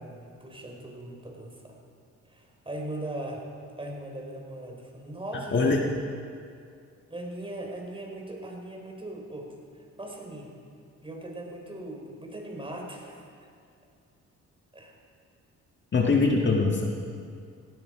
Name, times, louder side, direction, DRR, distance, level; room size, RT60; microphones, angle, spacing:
voice 1, 0.0-1.8 2.3-3.5 3.8-5.8 7.1-9.5 10.0-10.5 11.0-13.2 14.7-14.9, right 1 dB, 15° right, 0 dB, 4.0 m, -39 dB
voice 2, 5.5-5.9 15.9-16.8, left 3 dB, 40° left, 0 dB, 1.8 m, -22 dB
17.5 x 16.5 x 4.9 m, 2.4 s
cardioid pair, 90°, 30 cm